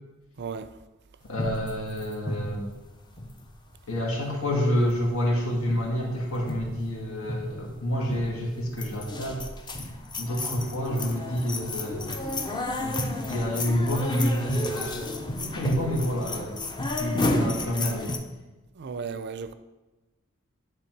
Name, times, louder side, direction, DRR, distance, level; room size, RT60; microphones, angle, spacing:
voice 1, 0.4-0.7 18.8-19.5, right 5 dB, 55° right, 0.4 m, -34 dB
voice 2, 1.3-2.7 3.9-9.8 10.2-12.2 12.8-16.6 16.9-18.1, equal, 80° left, 1.8 m, -29 dB
sound 1, 1.4-3.8 4.1-4.5 4.8-5.4 5.7-6.0 6.3-7.0 7.2-7.6 8.1-8.4 8.7-18.2, left 2 dB, 20° left, 0.6 m, -32 dB
9.8 x 3.5 x 4.6 m
head